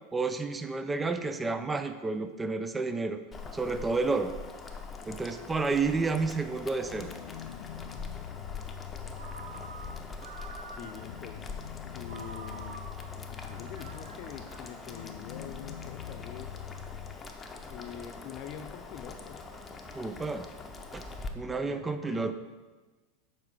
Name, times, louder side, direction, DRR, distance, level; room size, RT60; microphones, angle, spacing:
voice 1, 0.1-3.2 3.5-4.3 5.1-7.1 19.9-20.5 20.9-21.0 21.3-22.3, right 3 dB, 15° right, 9 dB, 0.5 m, -30 dB
Boiling, 3.3-21.3, left 4 dB, 20° left, 0.8 m, -44 dB
sound 1, 6.8-17.2, left 11 dB, 75° left, 0.3 m, -44 dB
Ringtone, 9.2-11.2 12.1-15.4, right 4 dB, 85° right, 0.7 m, -48 dB
voice 2, 10.8-11.6 11.9-12.7 13.3-16.6 17.7-19.4 21.5-22.3, left 8 dB, 50° left, 8 dB, 0.7 m, -45 dB
7.4 x 4.8 x 4.8 m, 1.3 s
hypercardioid pair, 100°, 0 cm